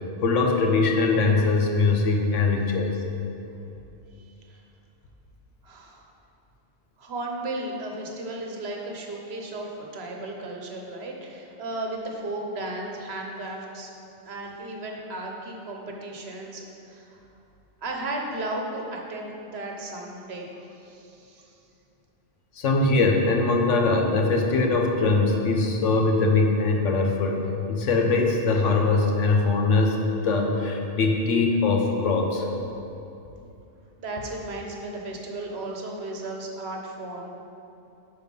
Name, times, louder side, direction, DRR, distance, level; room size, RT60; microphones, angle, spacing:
voice 1, 0.2-2.9 22.5-27.4 27.7-32.5, left 3 dB, 85° left, 2 dB, 1.3 m, -22 dB
voice 2, 5.6-6.0 7.0-13.9 14.2-17.2 17.8-21.5 34.0-37.3, right 2 dB, 60° right, 0 dB, 1.3 m, -35 dB
10.5 x 4.4 x 5.4 m, 2.8 s
omnidirectional pair, 1.2 m